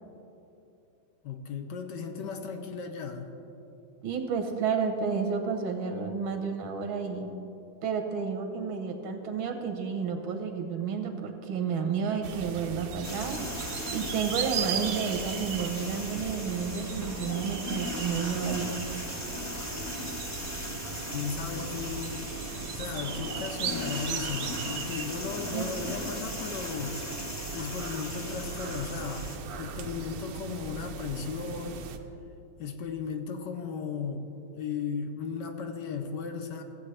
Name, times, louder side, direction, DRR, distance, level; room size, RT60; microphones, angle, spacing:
voice 1, 1.2-3.3 21.1-22.2 22.7-27.0 27.5-31.8 32.6-34.3 34.6-36.6, left 5 dB, 70° left, 6 dB, 1.2 m, -36 dB
voice 2, 4.0-7.3 7.8-13.4 13.9-18.8 25.5-26.0, right 6 dB, 85° right, 5 dB, 1.8 m, -31 dB
sound 1, 12.2-32.0, right 6 dB, 65° right, 0.9 m, -38 dB
sound 2, 13.0-29.4, left 1 dB, 25° left, 0.3 m, -38 dB
15.5 x 8.4 x 3.3 m, 2.9 s
omnidirectional pair, 2.1 m